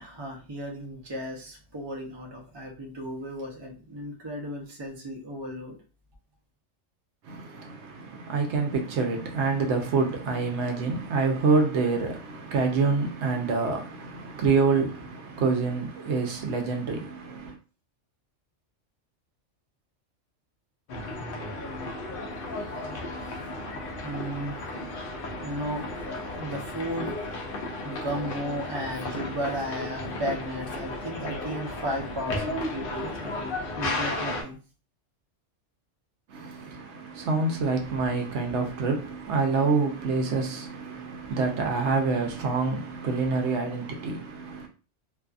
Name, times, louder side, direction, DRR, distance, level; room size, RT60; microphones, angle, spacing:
voice 1, 0.0-5.8 22.7-22.8 23.2-23.3 24.0-24.6 25.4-25.9 26.2-27.2 27.5-34.6, equal, 30° right, 0.5 m, -35 dB
voice 2, 7.2-17.5 36.3-44.7, right 4 dB, 70° right, 0.8 m, -27 dB
sound 1, 20.9-34.4, left 2 dB, 55° left, 0.7 m, -34 dB
2.6 x 2.4 x 2.3 m
omnidirectional pair, 1.2 m